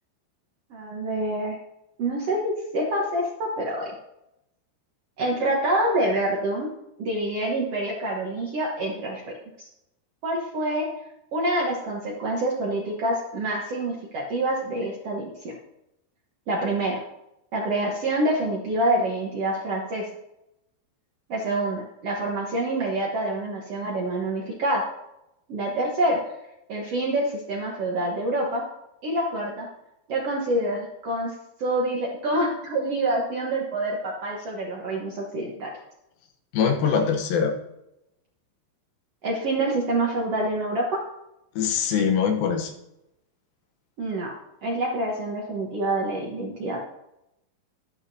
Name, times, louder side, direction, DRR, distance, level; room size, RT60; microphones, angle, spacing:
voice 1, 0.7-1.6 2.0-3.9 5.2-6.7 7.0-9.2 9.6-9.7 10.2-10.9 11.3-15.5 16.5-17.0 17.5-20.0 21.3-24.8 25.5-26.2 26.7-28.6 29.0-29.7 30.1-31.3 31.6-35.7 39.2-41.0 44.0-44.3 44.6-46.8, right 1 dB, 70° right, -2 dB, 1.4 m, -26 dB
voice 2, 36.5-37.5 41.6-42.7, left 6 dB, 70° left, 4 dB, 2.6 m, -23 dB
12.0 x 11.5 x 2.7 m, 0.86 s
omnidirectional pair, 4.6 m